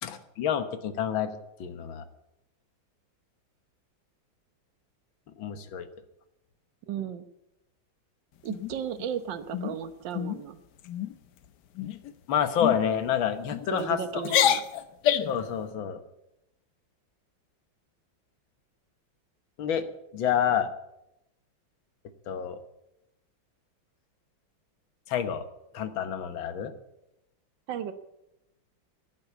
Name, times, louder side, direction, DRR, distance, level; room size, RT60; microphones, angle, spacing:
voice 1, 0.0-1.3 1.6-2.0 5.4-5.9 12.3-14.2 15.3-16.0 19.6-19.9 20.1-20.7 22.3-22.6 25.1-25.5 25.7-26.7, left 8 dB, 85° left, 10 dB, 1.9 m, -28 dB
voice 2, 6.9-7.2 8.4-10.6 13.7-14.6 27.7-27.9, right 8 dB, 70° right, 10 dB, 1.7 m, -34 dB
sound 1, 8.5-9.1 9.5-9.8 10.1-10.4 10.8-11.1 11.8-12.1 12.6-12.8 13.5-13.9 14.2-15.4, left 10 dB, 65° left, 1.2 m, -27 dB
12.0 x 10.5 x 8.2 m, 0.87 s
omnidirectional pair, 2.1 m